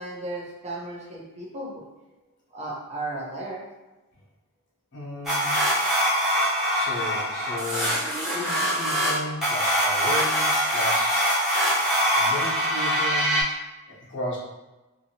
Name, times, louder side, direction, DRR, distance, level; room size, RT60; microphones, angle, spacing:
voice 1, 0.0-2.1 2.5-3.6, right 2 dB, 30° right, -3 dB, 0.6 m, -35 dB
voice 2, 4.9-5.7 6.7-11.4 12.2-13.4 13.9-14.4, left 1 dB, 55° left, -5 dB, 0.9 m, -34 dB
sound 1, 5.3-13.4, equal, ahead, 0.8 m, -23 dB
2.7 x 2.6 x 2.8 m, 1.1 s
head